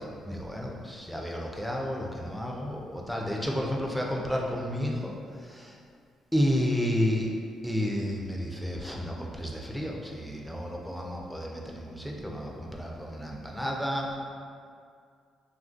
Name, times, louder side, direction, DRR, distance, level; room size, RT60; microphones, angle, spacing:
voice 1, 0.0-5.1 5.4-5.8 6.3-7.3 7.6-14.2, equal, ahead, -1 dB, 0.4 m, -31 dB
2.8 x 2.5 x 2.4 m, 2.2 s
cardioid pair, 90°, 0 cm